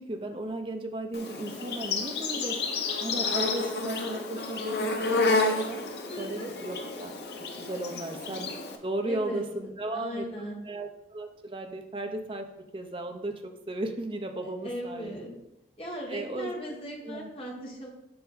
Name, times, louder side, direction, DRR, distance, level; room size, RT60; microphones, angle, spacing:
voice 1, 0.0-2.6 3.0-5.8 6.2-7.1 7.6-8.5 8.8-15.2 16.1-16.5 17.0-17.3, right 2 dB, 30° right, 5 dB, 0.6 m, -35 dB
Insect, 1.1-8.8, left 3 dB, 70° left, 0.8 m, -30 dB
voice 2, 6.1-6.6 9.0-9.4 9.9-10.6 14.6-15.3 15.8-17.9, equal, 30° left, -2 dB, 1.4 m, -37 dB
6.9 x 4.7 x 3.9 m, 0.88 s
head